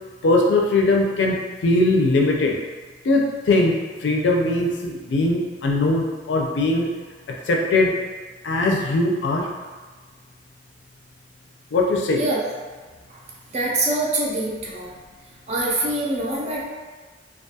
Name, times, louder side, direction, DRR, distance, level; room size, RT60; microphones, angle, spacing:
voice 1, 0.2-1.4 1.6-2.6 3.0-3.8 4.0-6.9 7.3-7.9 8.4-9.5 11.7-12.2, left 2 dB, 80° left, 0 dB, 0.4 m, -20 dB
voice 2, 13.5-14.9 15.5-16.6, right 2 dB, 40° right, -3 dB, 0.5 m, -24 dB
2.3 x 2.3 x 2.7 m, 1.4 s
head